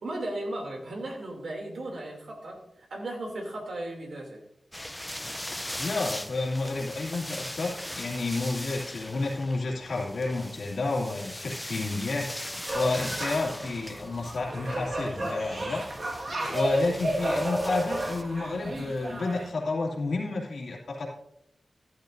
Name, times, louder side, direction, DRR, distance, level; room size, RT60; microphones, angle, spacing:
voice 1, 0.0-2.6 2.9-4.4, right 1 dB, 75° right, 0 dB, 2.8 m, -36 dB
sound 1, 4.7-18.2, left 1 dB, 10° left, 0.6 m, -40 dB
voice 2, 5.8-12.3 12.7-15.8 16.5-21.1, left 3 dB, 80° left, -3 dB, 2.6 m, -30 dB
sound 2, 12.7-19.5, right 1 dB, 50° right, 1.7 m, -32 dB
14.5 x 11.5 x 2.6 m, 0.77 s
wide cardioid pair, 120°, 0 cm